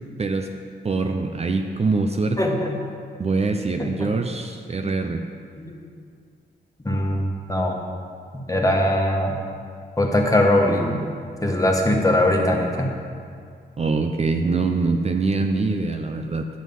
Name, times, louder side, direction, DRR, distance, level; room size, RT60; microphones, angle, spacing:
voice 1, 0.2-0.5 0.8-2.4 3.2-5.2 13.8-16.5, right 3 dB, 35° right, 4 dB, 0.6 m, -23 dB
voice 2, 2.4-2.8 3.8-4.1 4.8-5.0 5.6-5.8 6.8-7.8 8.3-9.4 10.0-11.0 11.4-12.9, left 1 dB, 20° left, 0 dB, 1.3 m, -21 dB
9.4 x 6.3 x 5.4 m, 2.3 s
cardioid pair, 75°, 18 cm